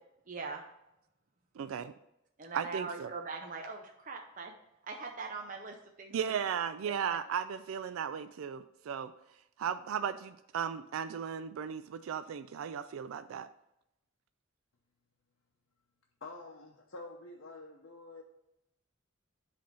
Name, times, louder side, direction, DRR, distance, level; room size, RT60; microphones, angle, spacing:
voice 1, 0.3-0.6 2.4-4.5 4.9-6.4 7.0-7.2, right 4 dB, 40° right, 2 dB, 0.6 m, -41 dB
voice 2, 1.6-1.9 2.5-3.1 6.1-9.1 9.6-13.5, right 7 dB, 80° right, 11 dB, 0.3 m, -36 dB
voice 3, 16.2-18.2, left 2 dB, 70° left, -2 dB, 0.8 m, -47 dB
7.7 x 3.4 x 5.2 m, 0.85 s
head